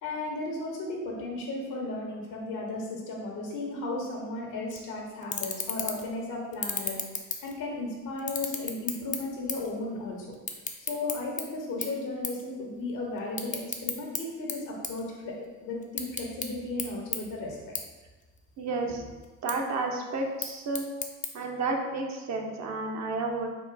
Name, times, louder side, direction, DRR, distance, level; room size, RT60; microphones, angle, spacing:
voice 1, 0.0-7.0 7.4-10.3 10.8-17.7, left 2 dB, 80° left, -1 dB, 1.3 m, -35 dB
sound 1, 4.7-4.8 5.2-6.1 6.5-7.8 8.2-9.8 10.0-11.4 11.8-12.0 12.2-12.4 12.8-14.2 14.5-15.5 15.8-16.5 16.8-16.9 17.1-17.2 17.8-17.9 18.2-18.8 19.2-19.5 20.2-21.3, left 4 dB, 25° left, 0.5 m, -33 dB
voice 2, 18.6-19.0 19.4-20.8 21.3-23.5, right 3 dB, 65° right, 2 dB, 0.8 m, -31 dB
4.4 x 2.5 x 4.7 m, 1.2 s
cardioid pair, 90°, 30 cm